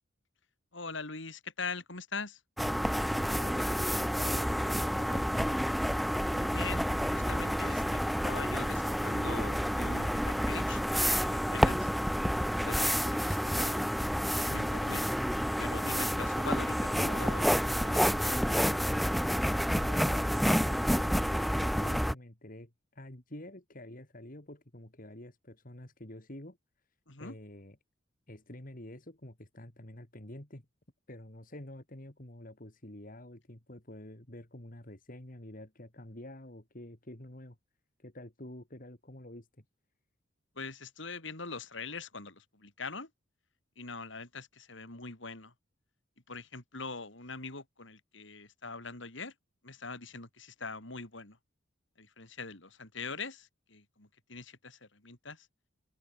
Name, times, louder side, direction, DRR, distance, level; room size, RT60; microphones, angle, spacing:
voice 1, 0.7-2.4 6.3-6.9 7.1-11.9 12.6-13.9 14.4-15.1 15.6-17.5 17.8-18.4 27.1-27.4 40.6-43.1 43.8-45.5 46.3-49.3 49.6-51.4 52.0-55.5, left 4 dB, 65° left, 3.8 m, -42 dB
sound 1, 2.6-22.1, equal, ahead, 0.7 m, -29 dB
voice 2, 3.4-5.6 19.7-26.6 27.2-27.8 28.3-30.7 31.1-37.6 38.0-39.6, left 1 dB, 45° left, 2.9 m, -48 dB
open air
head